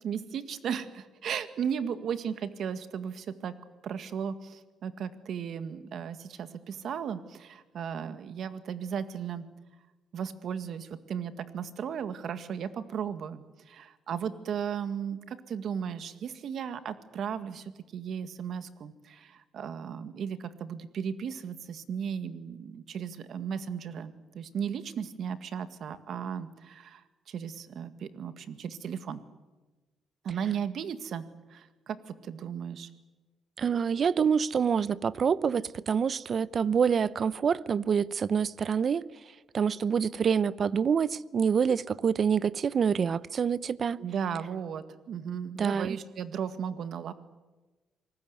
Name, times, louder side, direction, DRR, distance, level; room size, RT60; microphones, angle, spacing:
voice 1, 0.0-3.5 3.8-9.5 10.1-29.2 30.2-31.2 31.5-32.9 44.0-47.1, right 7 dB, 65° right, 1.9 m, -36 dB
voice 2, 33.6-39.1 39.5-44.0 45.6-46.0, right 6 dB, 50° right, 0.8 m, -26 dB
26.5 x 19.5 x 9.6 m
cardioid pair, 90°, 0 cm